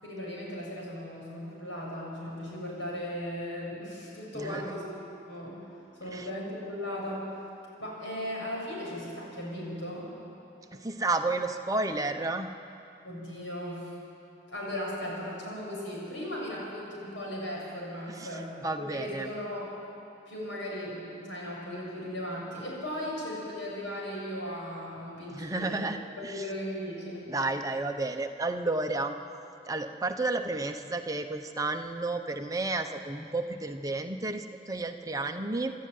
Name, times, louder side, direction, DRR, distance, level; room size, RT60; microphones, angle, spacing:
voice 1, 0.0-4.8 5.3-5.6 6.0-7.3 7.8-10.1 13.0-13.9 14.5-19.7 20.3-25.9 26.2-27.3, left 1 dB, 85° left, -3 dB, 7.2 m, -37 dB
voice 2, 4.3-4.7 6.1-6.3 10.7-12.5 18.1-19.3 25.3-26.0 26.2-26.4 27.3-29.1 29.7-35.7, right 2 dB, 20° right, 5 dB, 0.9 m, -32 dB
25.5 x 12.5 x 9.4 m, 2.8 s
head